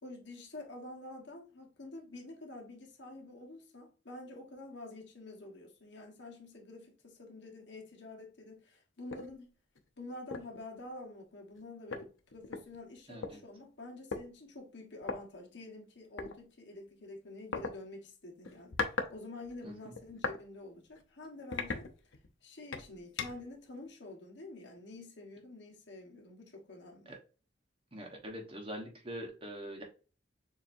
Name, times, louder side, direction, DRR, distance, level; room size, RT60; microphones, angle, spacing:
voice 1, 0.0-9.5 10.0-21.9 22.4-27.1, left 2 dB, 60° left, 1.4 m, -48 dB
sound 1, 9.1-9.3 9.8-9.9 10.3-10.6 11.6-11.7 11.9-13.3 14.1-14.2 15.0-15.2 16.2-16.3 17.5-17.7 18.4-19.1 19.4-20.4 20.9-21.0 21.5-22.3 22.7-23.5, left 4 dB, 85° left, 0.8 m, -38 dB
voice 2, 13.1-13.4 19.6-19.9 27.1-27.2 27.9-29.8, equal, 30° right, 1.1 m, -43 dB
6.9 x 2.8 x 2.6 m
head